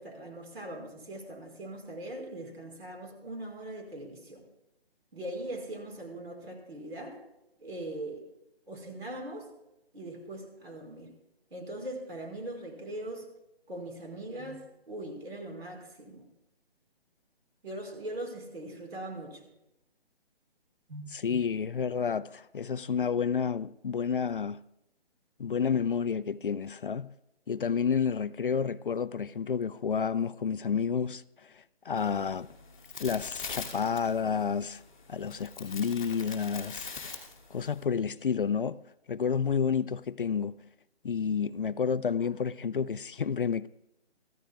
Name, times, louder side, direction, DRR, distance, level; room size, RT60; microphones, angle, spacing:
voice 1, 0.0-4.4 5.1-7.2 7.6-8.2 8.7-9.5 9.9-11.1 11.5-13.3 13.7-14.6 14.9-16.3 17.6-19.5 20.9-21.1, right 1 dB, 70° right, 4.9 m, -40 dB
voice 2, 21.1-24.6 25.4-27.1 27.5-32.5 33.0-34.8 35.1-36.9 37.5-38.8 39.1-40.6 41.0-43.7, left 6 dB, 55° left, 0.4 m, -30 dB
sound 1, 32.0-37.8, left 5 dB, 5° left, 0.8 m, -43 dB
24.0 x 14.5 x 2.3 m
hypercardioid pair, 170°, 32 cm